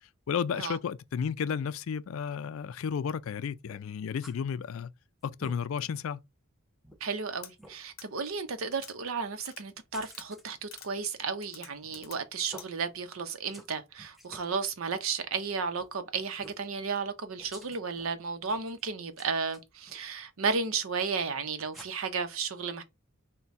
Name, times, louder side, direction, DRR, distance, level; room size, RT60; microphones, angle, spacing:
voice 1, 0.0-4.9 5.2-6.2, left 7 dB, 70° left, 0.4 m, -33 dB
sound 1, 3.7-4.4 4.8-4.9 5.2-5.6 6.2-6.3 6.8-7.0 7.6-7.8 9.9-10.4 11.8-12.2 12.5-12.7 13.3-13.7 14.0-14.5 15.8-15.9 16.4-16.7 17.4-18.1 18.4-18.8 19.2-20.0 20.5-20.7 21.7-21.9, equal, ahead, 0.6 m, -51 dB
voice 2, 7.0-22.8, right 5 dB, 75° right, 0.7 m, -33 dB
sound 2, 7.4-7.5 8.0-8.1 8.7-8.9 9.5-9.6 10.1-10.3 10.7-10.9 11.4-12.2 12.6-12.7, left 9 dB, 45° left, 0.7 m, -47 dB
4.1 x 2.2 x 4.5 m
head